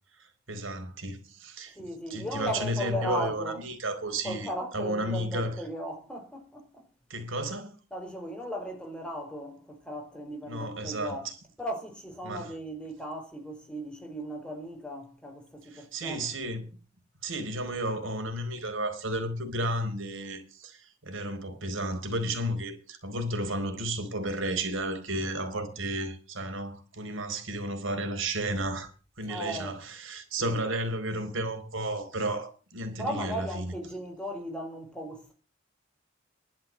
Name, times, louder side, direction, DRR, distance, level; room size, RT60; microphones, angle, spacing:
voice 1, 0.5-4.5 4.7-5.6 7.1-7.7 10.5-11.2 12.2-12.5 15.7-16.7 17.2-28.9 29.2-33.7, right 1 dB, 85° right, 4.3 m, -33 dB
voice 2, 1.7-3.6 4.2-6.8 7.9-11.2 11.6-16.3 29.3-29.8 30.4-30.6 33.0-35.3, equal, 5° left, 4.7 m, -37 dB
12.0 x 12.0 x 7.3 m
head